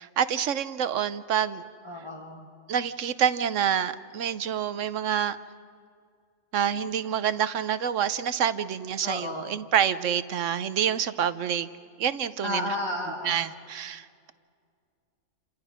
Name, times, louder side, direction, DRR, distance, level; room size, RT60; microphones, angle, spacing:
voice 1, 0.0-1.6 2.7-5.4 6.5-11.7 12.0-12.7 13.2-14.3, right 9 dB, 70° right, 14 dB, 1.1 m, -27 dB
voice 2, 1.8-2.5 9.0-9.6 12.4-13.5, left 1 dB, 20° left, -4 dB, 2.1 m, -33 dB
30.0 x 27.5 x 5.1 m, 2.2 s
omnidirectional pair, 1.4 m